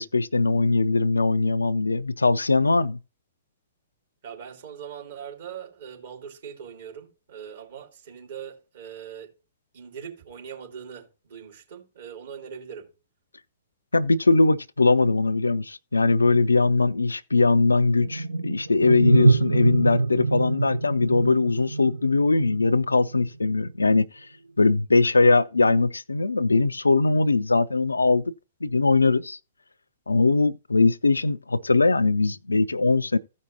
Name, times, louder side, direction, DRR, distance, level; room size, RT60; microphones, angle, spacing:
voice 1, 0.0-3.0 13.9-24.1 24.6-28.2 28.6-29.4 30.1-33.2, left 3 dB, 80° left, 0.5 m, -21 dB
voice 2, 4.2-9.3 9.7-12.9, right 8 dB, 55° right, 3.0 m, -41 dB
sound 1, 18.0-23.3, right 2 dB, 80° right, 0.7 m, -24 dB
16.0 x 5.4 x 2.8 m
figure-of-eight pair, 110°, 0 cm